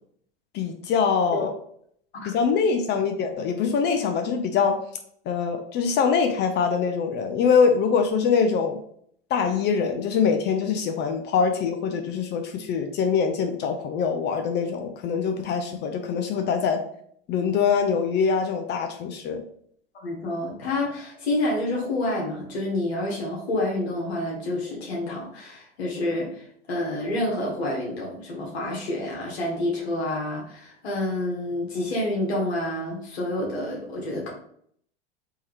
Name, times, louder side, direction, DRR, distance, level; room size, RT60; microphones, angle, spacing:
voice 1, 0.5-1.5 2.2-4.8 5.3-8.8 9.3-16.8 17.3-19.4, left 6 dB, 35° left, 6 dB, 0.5 m, -23 dB
voice 2, 20.0-26.4 26.7-34.3, left 1 dB, 85° left, -3 dB, 1.3 m, -28 dB
3.6 x 2.9 x 3.0 m, 0.65 s
hypercardioid pair, 95°, 31 cm